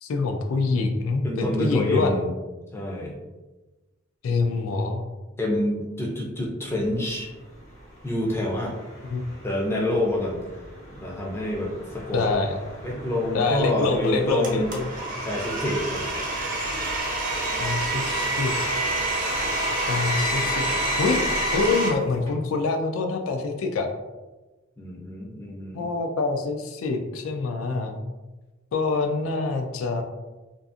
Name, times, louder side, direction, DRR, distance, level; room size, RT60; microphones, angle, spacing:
voice 1, 0.0-2.1 4.2-5.0 9.0-9.2 12.1-12.5 13.3-14.8 17.6-18.5 19.9-21.2 21.5-23.9 25.7-28.0 28.7-30.0, left 4 dB, 90° left, 4 dB, 0.4 m, -25 dB
voice 2, 1.2-2.3 2.7-3.2 5.4-7.3 8.0-8.7 9.4-10.4 10.9-12.2 12.8-14.7 15.2-16.0 24.8-25.9, left 1 dB, 10° left, -2 dB, 0.4 m, -27 dB
sound 1, 6.7-22.3, equal, 70° left, 0.7 m, -40 dB
Domestic sounds home sounds, 14.4-21.9, right 1 dB, 40° right, 0.5 m, -27 dB
2.5 x 2.4 x 2.4 m, 1.1 s
head